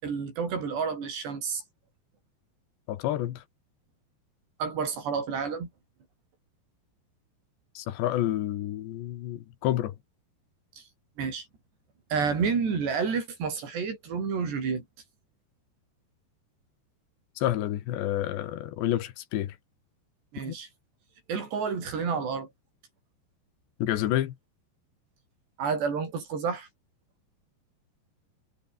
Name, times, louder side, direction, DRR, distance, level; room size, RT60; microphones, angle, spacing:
voice 1, 0.0-1.6 4.6-5.7 10.8-10.9 11.2-11.5 12.1-14.8 20.3-20.7 21.3-22.5 25.6-26.7, right 5 dB, 75° right, 7.9 m, -30 dB
voice 2, 2.9-3.4 7.8-9.9 17.4-19.6 20.5-20.6 23.8-24.4, left 13 dB, 85° left, 3.8 m, -29 dB
omnidirectional pair, 4.9 m